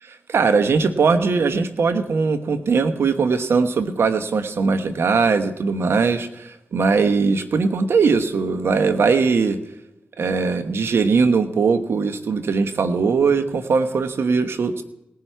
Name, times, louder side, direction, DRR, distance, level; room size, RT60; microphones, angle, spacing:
voice 1, 0.0-9.6 10.2-14.8, right 4 dB, 80° right, 10 dB, 1.1 m, -20 dB
18.5 x 10.5 x 4.6 m, 0.88 s
cardioid pair, 45°, 4 cm